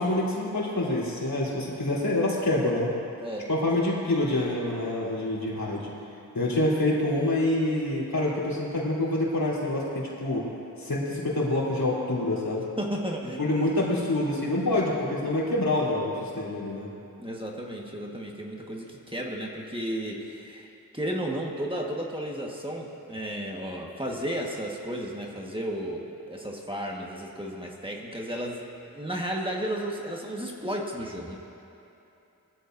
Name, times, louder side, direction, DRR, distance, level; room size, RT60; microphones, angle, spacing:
voice 1, 0.0-2.9 3.5-5.9 6.3-10.4 10.8-12.6 13.4-16.9, left 1 dB, 75° left, -6 dB, 3.5 m, -26 dB
voice 2, 12.8-13.5 13.7-13.8 17.2-31.4, equal, 15° right, -1 dB, 1.5 m, -33 dB
21.0 x 14.5 x 2.7 m, 2.9 s
wide cardioid pair, 75°, 36 cm